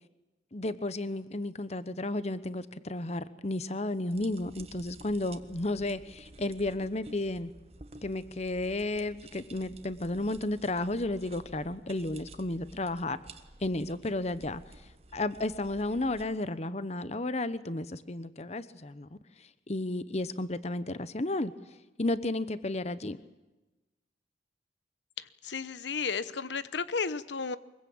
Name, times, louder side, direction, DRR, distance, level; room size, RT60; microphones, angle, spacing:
voice 1, 0.5-7.5 8.0-13.2 13.6-14.6 15.1-19.1 19.7-21.5 22.0-23.2, left 2 dB, 40° left, 14 dB, 1.0 m, -33 dB
sound 1, 4.1-16.2, right 2 dB, 35° right, 1.5 m, -52 dB
voice 2, 25.2-27.6, left 5 dB, 85° left, 15 dB, 1.0 m, -33 dB
24.0 x 22.0 x 8.7 m, 1.1 s
head